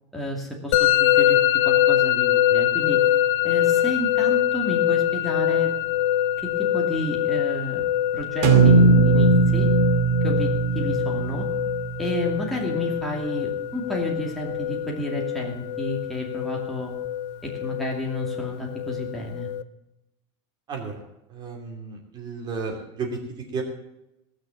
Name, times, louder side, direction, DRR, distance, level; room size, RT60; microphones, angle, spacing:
voice 1, 0.1-1.4 1.7-3.0 3.4-5.7 6.4-7.8 8.1-9.7 10.2-11.5 12.0-16.9 17.4-19.5, left 1 dB, ahead, -3 dB, 2.5 m, -31 dB
Musical instrument, 0.7-19.6, left 12 dB, 80° left, 0.8 m, -24 dB
sound 1, 8.4-12.6, right 4 dB, 60° right, 2.3 m, -19 dB
voice 2, 20.7-23.6, right 4 dB, 30° right, 1 dB, 2.7 m, -33 dB
19.0 x 6.4 x 7.3 m, 0.87 s
supercardioid pair, 155°, 15 cm